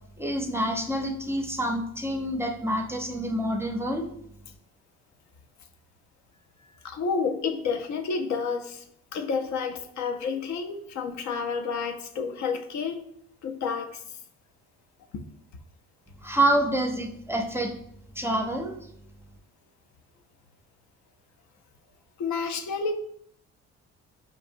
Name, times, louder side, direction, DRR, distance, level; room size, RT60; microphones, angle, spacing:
voice 1, 0.2-4.1 16.2-17.7 18.2-18.8, right 1 dB, 10° right, 3 dB, 0.5 m, -27 dB
voice 2, 6.8-8.8 9.1-13.0 13.4-14.0 15.1-15.2 22.2-22.9, left 5 dB, 70° left, 7 dB, 0.5 m, -30 dB
4.7 x 2.8 x 2.6 m, 0.70 s
cardioid pair, 90°, 30 cm